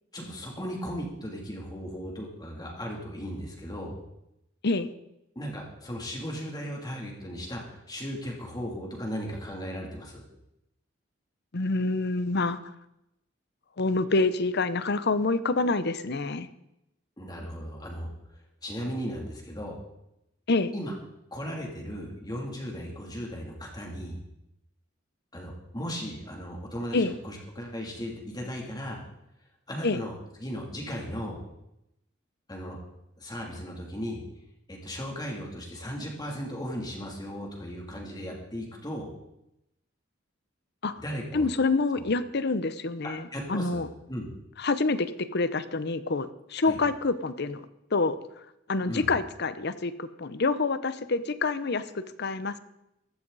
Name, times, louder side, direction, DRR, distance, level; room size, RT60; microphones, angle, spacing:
voice 1, 0.1-3.9 5.3-10.2 17.2-18.1 18.6-19.8 20.7-20.9 21.3-24.2 25.3-29.0 29.7-30.1 30.4-31.4 32.5-32.8 33.2-34.2 34.7-39.1 41.0-41.5 41.9-42.0 43.3-44.3 46.6-46.8 48.9-49.1, equal, 20° left, -1 dB, 2.9 m, -36 dB
voice 2, 11.5-12.7 13.8-16.5 20.5-20.7 26.9-27.1 29.8-30.0 40.8-41.0 41.3-43.9 44.6-47.7 47.9-48.2 48.7-52.6, left 3 dB, 60° left, 13 dB, 0.8 m, -27 dB
15.0 x 12.5 x 4.1 m, 0.86 s
head